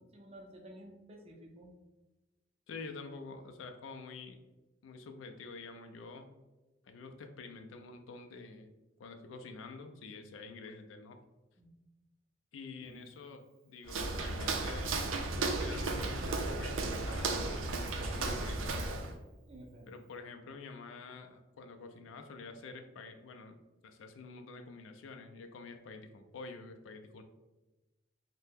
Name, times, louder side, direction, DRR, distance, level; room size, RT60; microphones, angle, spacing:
voice 1, 0.0-1.7 11.6-11.7 12.8-13.0 19.5-19.9, right 1 dB, 30° right, 2 dB, 0.5 m, -52 dB
voice 2, 2.7-4.4 4.8-6.3 6.8-8.7 9.0-11.2 12.5-14.9 15.5-17.6 17.9-18.7 19.9-23.6 23.8-27.2, left 4 dB, 75° left, 6 dB, 0.4 m, -48 dB
Walk footsteps, 13.9-19.1, right 3 dB, 90° right, 0.4 m, -34 dB
2.7 x 2.1 x 3.5 m, 1.1 s
head